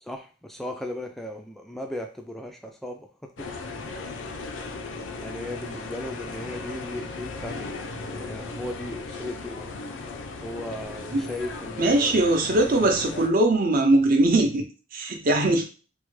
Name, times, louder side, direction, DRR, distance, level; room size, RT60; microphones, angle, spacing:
voice 1, 0.0-3.5 4.6-4.7 5.2-9.7 10.4-12.3, left 1 dB, ahead, 0.3 m, -37 dB
sound 1, 3.4-13.3, left 3 dB, 75° left, 0.5 m, -37 dB
voice 2, 11.8-14.6 14.9-15.6, right 2 dB, 50° right, 0.6 m, -21 dB
3.3 x 2.1 x 3.1 m
head